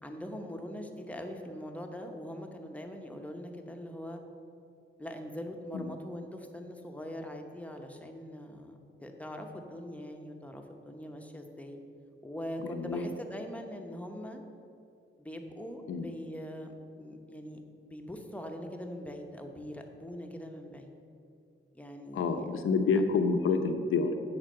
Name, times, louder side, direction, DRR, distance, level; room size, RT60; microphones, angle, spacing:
voice 1, 0.0-4.2 5.0-11.8 12.2-14.4 15.2-20.9 21.7-22.5, equal, 5° left, 3 dB, 0.9 m, -42 dB
voice 2, 12.6-13.0 15.9-16.1 22.1-24.1, left 4 dB, 75° left, 7 dB, 0.8 m, -28 dB
10.5 x 4.1 x 7.7 m, 2.6 s
wide cardioid pair, 120°, 21 cm